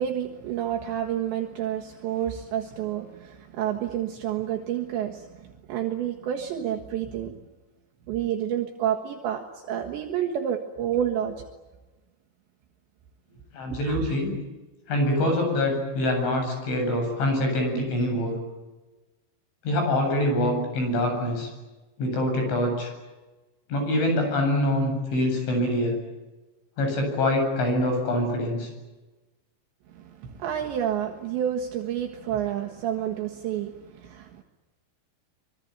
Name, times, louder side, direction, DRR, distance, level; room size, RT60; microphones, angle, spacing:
voice 1, 0.0-7.3 8.1-11.4 13.8-14.1 29.9-34.4, right 10 dB, 70° right, 2 dB, 3.6 m, -29 dB
voice 2, 13.5-14.3 14.9-18.4 19.6-21.5 22.0-22.9 23.7-26.0 26.8-28.7, left 1 dB, 65° left, 4 dB, 10.0 m, -25 dB
25.5 x 24.0 x 9.5 m, 1.1 s
omnidirectional pair, 5.8 m